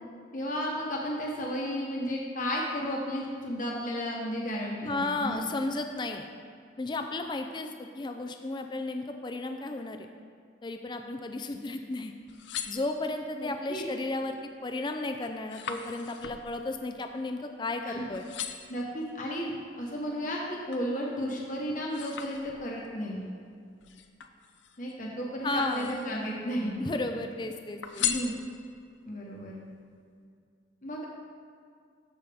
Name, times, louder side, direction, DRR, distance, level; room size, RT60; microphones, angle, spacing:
voice 1, 0.3-5.4 13.4-13.8 17.8-18.0 18.7-19.5 19.8-23.3 24.8-26.8 28.0-28.3 29.0-29.6 30.8-31.1, equal, 45° left, -2 dB, 1.1 m, -33 dB
voice 2, 4.8-6.3 6.8-10.1 10.6-12.1 12.7-18.3 25.4-26.0 26.8-28.1, left 2 dB, 25° left, 5 dB, 0.4 m, -34 dB
sound 1, 12.2-13.4 14.0-14.4 14.7-17.8 18.1-18.8 19.5-20.9 21.4-22.9 23.8-24.9 25.5-26.3 26.6-27.3 27.8-28.9 29.4-29.5, left 8 dB, 85° left, 0.6 m, -38 dB
13.5 x 5.6 x 3.5 m, 2.3 s
head